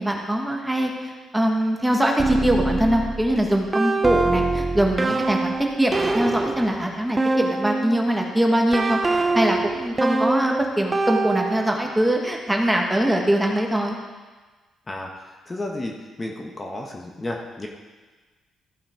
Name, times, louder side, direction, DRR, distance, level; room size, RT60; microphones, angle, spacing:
voice 1, 0.0-9.0 9.3-14.0, right 1 dB, 5° right, 1 dB, 1.4 m, -22 dB
sound 1, 2.2-8.1 8.7-11.9, right 2 dB, 25° right, 0.6 m, -24 dB
voice 2, 15.5-15.9 16.2-17.7, left 2 dB, 25° left, 1 dB, 1.2 m, -32 dB
14.5 x 5.7 x 4.5 m, 1.3 s
cardioid pair, 90°, 0 cm